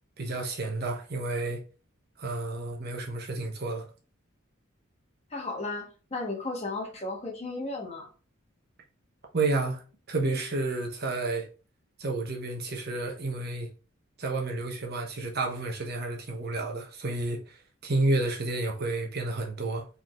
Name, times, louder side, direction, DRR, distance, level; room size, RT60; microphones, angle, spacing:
voice 1, 0.2-1.6 2.2-3.9 9.3-9.8 10.1-11.5 12.0-13.7 14.2-17.6 17.8-19.9, right 2 dB, 50° right, 1.0 m, -30 dB
voice 2, 5.3-8.1, left 2 dB, 30° left, 1.4 m, -34 dB
4.5 x 3.9 x 3.0 m
head